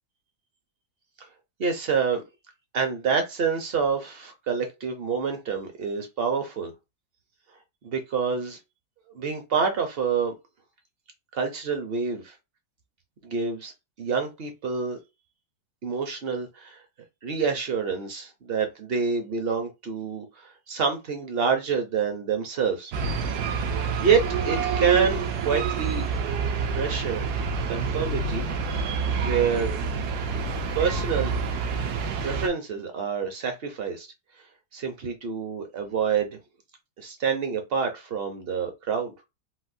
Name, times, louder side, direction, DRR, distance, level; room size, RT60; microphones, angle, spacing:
voice 1, 1.6-2.2 2.7-6.7 7.8-8.6 9.1-10.3 11.3-12.3 13.2-13.7 14.0-15.0 15.8-16.8 17.2-22.9 24.0-26.1 26.7-27.4 27.7-28.5 29.2-29.8 30.7-31.6 32.2-34.1 34.7-36.4 37.0-39.1, right 6 dB, 55° right, 0.7 m, -27 dB
sound 1, 22.9-32.5, right 5 dB, 80° right, 1.1 m, -28 dB
4.0 x 2.1 x 2.5 m
omnidirectional pair, 1.7 m